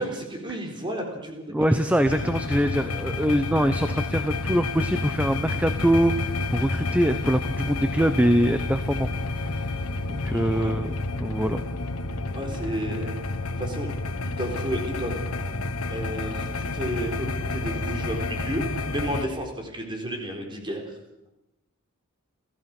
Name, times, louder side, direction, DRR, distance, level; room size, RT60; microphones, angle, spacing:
voice 1, 0.0-1.8 10.3-10.7 12.3-13.2 13.6-13.9 14.3-15.2 15.9-20.8, right 1 dB, 20° right, 3 dB, 4.0 m, -32 dB
voice 2, 1.5-9.1 9.4-9.6 10.1-11.6 15.5-15.6, equal, 5° right, 9 dB, 0.8 m, -24 dB
sound 1, 2.0-19.3, left 2 dB, 85° left, 1.4 m, -30 dB
29.5 x 14.5 x 6.0 m, 0.93 s
head